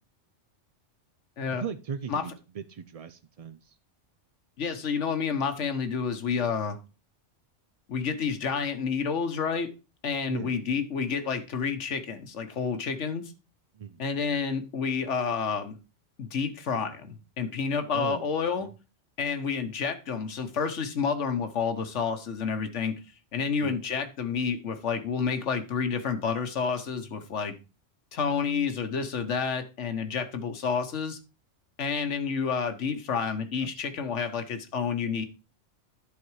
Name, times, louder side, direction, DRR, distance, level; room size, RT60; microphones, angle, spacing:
voice 1, 1.6-3.7 10.3-10.5 13.7-14.0 17.9-18.3 18.6-18.7 23.6-23.8 33.6-34.0, right 7 dB, 75° right, 11 dB, 0.3 m, -38 dB
voice 2, 4.6-6.8 7.9-9.7 10.0-13.2 14.0-15.8 16.2-18.7 19.2-23.0 23.3-27.6 28.1-31.2 31.8-35.2, left 6 dB, 75° left, 8 dB, 1.3 m, -29 dB
10.5 x 4.2 x 4.6 m, 0.30 s
omnidirectional pair, 1.2 m